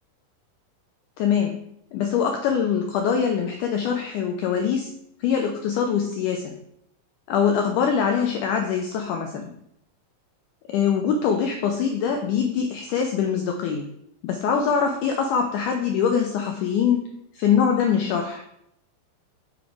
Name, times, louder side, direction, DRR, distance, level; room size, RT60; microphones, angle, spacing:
voice 1, 1.2-4.9 5.2-6.6 7.3-9.5 10.7-13.9 14.2-17.0 17.4-18.4, left 7 dB, 85° left, 3 dB, 1.8 m, -23 dB
5.8 x 4.0 x 4.7 m, 0.76 s
omnidirectional pair, 4.2 m